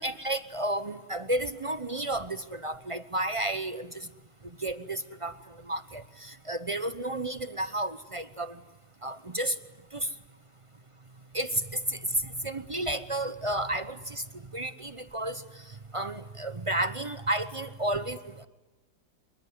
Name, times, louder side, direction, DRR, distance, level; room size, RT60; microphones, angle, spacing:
voice 1, 0.0-4.1 4.6-5.4 5.6-8.6 9.0-9.6 9.9-10.1 11.3-14.2 14.5-15.4 15.9-18.5, right 1 dB, 35° right, 12 dB, 0.5 m, -32 dB
26.5 x 23.5 x 9.5 m, 1.1 s
omnidirectional pair, 2.0 m